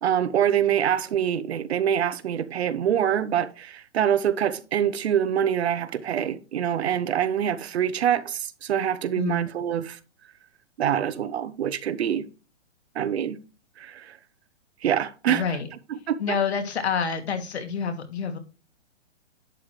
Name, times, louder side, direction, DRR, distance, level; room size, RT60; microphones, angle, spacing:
voice 1, 0.0-10.0 10.8-12.2 12.9-13.4 13.8-14.2 14.8-15.4 15.9-16.2, right 9 dB, 60° right, 1.1 m, -25 dB
voice 2, 15.3-15.7 16.2-18.4, left 6 dB, 65° left, 2.6 m, -27 dB
11.5 x 6.7 x 3.2 m
hypercardioid pair, 150°, 35 cm